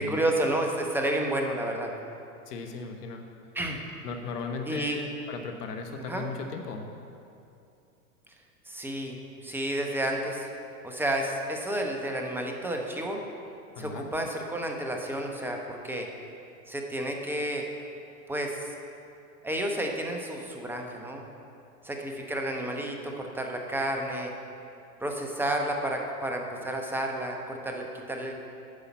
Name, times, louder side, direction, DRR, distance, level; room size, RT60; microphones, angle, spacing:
voice 1, 0.0-1.9 3.5-3.8 4.7-5.0 6.0-6.3 8.7-9.2 9.4-10.5 10.8-13.2 13.8-16.1 16.7-17.7 18.3-18.6 19.4-21.2 21.8-24.3 25.0-28.3, right 1 dB, 5° right, 2 dB, 0.9 m, -31 dB
voice 2, 2.5-3.2 4.0-6.9 13.8-14.1, left 4 dB, 75° left, 4 dB, 1.1 m, -36 dB
9.7 x 5.6 x 7.1 m, 2.6 s
hypercardioid pair, 110°, 48 cm